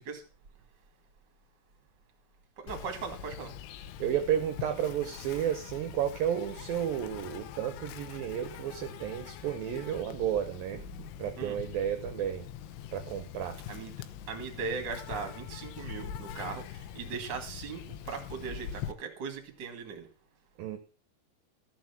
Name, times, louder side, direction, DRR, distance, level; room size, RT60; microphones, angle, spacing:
voice 1, 2.6-3.5 10.7-11.1 11.4-11.6 13.7-14.0 14.3-20.1, right 5 dB, 35° right, 4 dB, 1.9 m, -39 dB
Insect, 2.7-18.9, left 9 dB, 85° left, 3.2 m, -43 dB
voice 2, 3.7-10.8 11.2-12.5 12.9-13.6 20.6-20.8, right 10 dB, 75° right, 8 dB, 2.2 m, -32 dB
14.0 x 6.1 x 7.2 m, 0.39 s
omnidirectional pair, 5.2 m